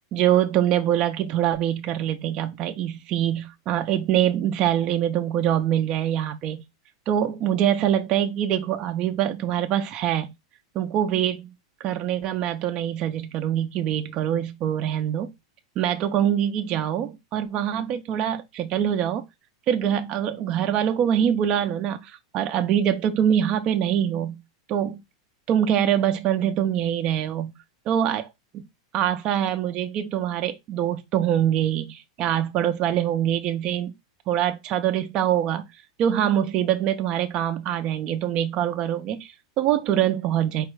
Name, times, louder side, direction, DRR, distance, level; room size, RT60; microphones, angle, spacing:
voice 1, 0.1-6.6 7.1-10.3 10.7-11.5 11.8-15.3 15.8-19.2 19.7-24.4 24.7-25.0 25.5-27.5 27.9-28.6 28.9-33.9 34.3-35.6 36.0-40.7, right 10 dB, 30° right, 0.5 m, -24 dB
4.7 x 2.1 x 4.6 m
supercardioid pair, 155°, 3 cm